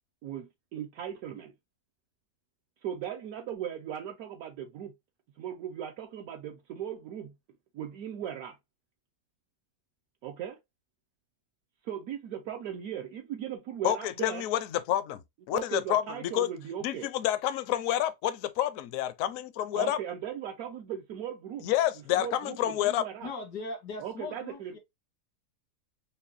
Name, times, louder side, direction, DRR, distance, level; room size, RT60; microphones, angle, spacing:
voice 1, 0.2-1.5 2.8-4.9 5.4-7.4 7.7-8.6 10.2-10.6 11.8-14.5 15.5-17.1 19.7-21.7 22.1-23.3 24.0-24.8, right 9 dB, 70° right, 1.0 m, -38 dB
voice 2, 13.8-15.2 15.5-16.5 16.8-20.0 21.6-23.0, left 12 dB, 70° left, 0.8 m, -29 dB
voice 3, 23.2-24.8, left 3 dB, 85° left, 1.8 m, -39 dB
5.4 x 2.2 x 2.5 m
omnidirectional pair, 1.7 m